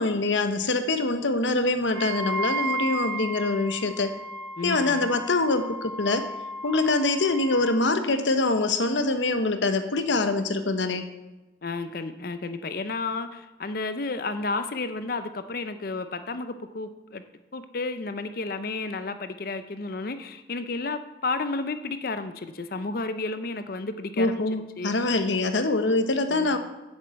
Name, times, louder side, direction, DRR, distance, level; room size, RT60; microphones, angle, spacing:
voice 1, 0.0-4.2 4.6-6.3 6.6-11.0 24.2-26.6, left 2 dB, 80° left, 8 dB, 1.1 m, -24 dB
Wind instrument woodwind instrument, 1.9-7.8, right 1 dB, 90° right, 1.8 m, -34 dB
voice 2, 4.6-5.1 11.6-17.2 17.5-24.3 24.8-24.9 26.3-26.6, left 3 dB, 50° left, 10 dB, 0.6 m, -32 dB
7.6 x 7.4 x 8.2 m, 1.1 s
head